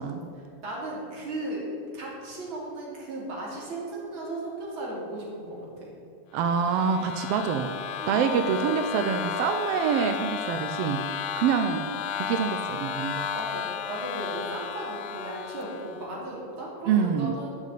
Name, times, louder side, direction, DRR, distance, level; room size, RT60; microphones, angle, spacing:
voice 1, 0.0-1.7 1.9-5.9 8.0-8.6 11.5-11.7 13.3-17.6, right 2 dB, 45° right, -4 dB, 3.7 m, -36 dB
voice 2, 6.3-7.7 8.1-11.0 11.4-13.3 16.9-17.3, right 7 dB, 75° right, 7 dB, 1.4 m, -26 dB
sound 1, 6.4-16.1, left 10 dB, 80° left, 1.5 m, -33 dB
12.0 x 6.6 x 8.3 m, 2.8 s
omnidirectional pair, 3.3 m